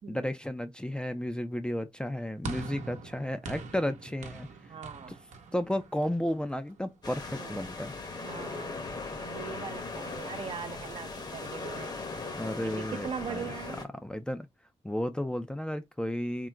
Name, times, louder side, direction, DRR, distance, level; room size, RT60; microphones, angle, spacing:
voice 1, 0.1-4.5 5.1-5.2 5.5-7.9 12.4-13.4 14.0-14.5 14.8-16.5, left 1 dB, 10° left, 0.4 m, -33 dB
sound 1, 2.4-6.9, right 3 dB, 85° right, 0.8 m, -43 dB
voice 2, 4.7-5.2 7.4-7.7 8.2-8.8 9.2-11.9 12.6-13.8, right 7 dB, 50° right, 0.6 m, -41 dB
sound 2, 7.0-13.8, left 3 dB, 35° left, 0.9 m, -39 dB
3.7 x 2.0 x 4.4 m
cardioid pair, 100°, 12 cm